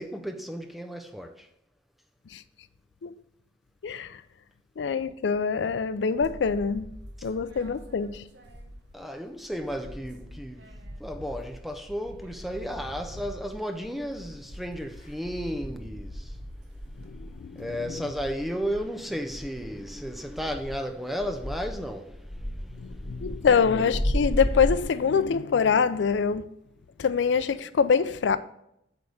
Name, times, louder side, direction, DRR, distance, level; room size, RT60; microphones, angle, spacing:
voice 1, 0.0-1.5 7.2-7.3 8.9-16.4 17.2-23.5, equal, ahead, 0.5 m, -34 dB
voice 2, 3.8-4.2 4.8-6.9 7.2-8.2 17.0-18.0 22.8-26.4 27.0-28.4, left 6 dB, 80° left, 0.4 m, -25 dB
sound 1, 6.2-9.1 9.4-17.1, equal, 75° right, 1.1 m, -44 dB
sound 2, 13.9-14.0 14.4-15.1 15.5-24.8, equal, 20° left, 2.9 m, -34 dB
8.0 x 3.5 x 6.3 m
head